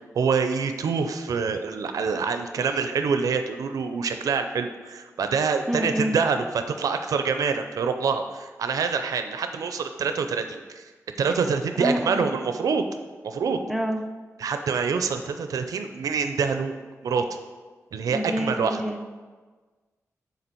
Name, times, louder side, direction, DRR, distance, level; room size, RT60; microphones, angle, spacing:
voice 1, 0.1-10.9 11.2-12.8 13.2-13.6 14.4-16.7 17.0-17.2 17.9-18.8, right 5 dB, 90° right, 7 dB, 0.4 m, -26 dB
voice 2, 5.7-6.1 11.8-12.3 13.7-14.0 18.1-19.0, equal, ahead, 5 dB, 0.5 m, -27 dB
6.7 x 4.0 x 4.4 m, 1.4 s
wide cardioid pair, 130°, 6 cm